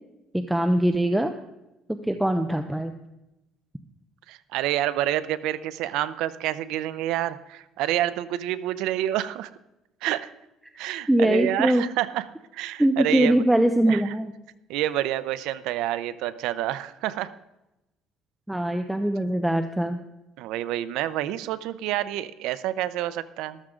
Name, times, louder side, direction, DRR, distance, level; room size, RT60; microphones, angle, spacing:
voice 1, 0.3-1.3 2.0-2.9 11.1-11.8 12.8-14.3 18.5-20.0, right 1 dB, 5° right, 7 dB, 0.6 m, -22 dB
voice 2, 4.3-9.5 10.0-10.3 10.8-12.2 12.5-13.4 13.9-14.1 14.7-17.3 20.4-23.6, right 13 dB, 85° right, 14 dB, 0.6 m, -28 dB
13.5 x 13.0 x 3.8 m, 0.95 s
cardioid pair, 145°, 0 cm